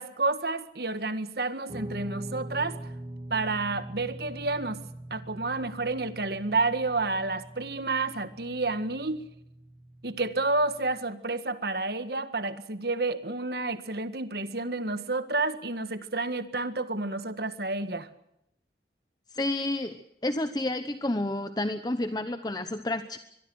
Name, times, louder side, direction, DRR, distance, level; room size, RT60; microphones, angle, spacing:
voice 1, 0.0-2.8 3.3-4.8 5.1-9.2 10.0-18.1, right 3 dB, 55° right, 11 dB, 1.7 m, -30 dB
Guitar, 1.7-11.0, right 1 dB, 30° right, 2.0 m, -43 dB
voice 2, 19.3-23.2, left 1 dB, 20° left, 10 dB, 0.9 m, -30 dB
23.5 x 22.5 x 6.4 m, 0.79 s
head